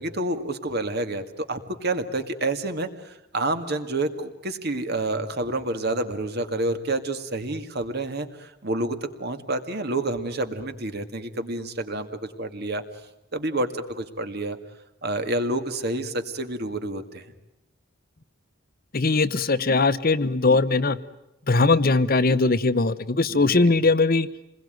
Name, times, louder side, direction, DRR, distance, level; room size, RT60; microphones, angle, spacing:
voice 1, 0.0-12.1 12.4-12.8 13.3-14.6 15.0-17.3 23.3-23.7, right 2 dB, 50° right, 8 dB, 2.2 m, -29 dB
voice 2, 18.9-21.0 21.5-24.3, left 3 dB, 45° left, 13 dB, 0.9 m, -20 dB
28.5 x 21.0 x 9.3 m, 0.93 s
head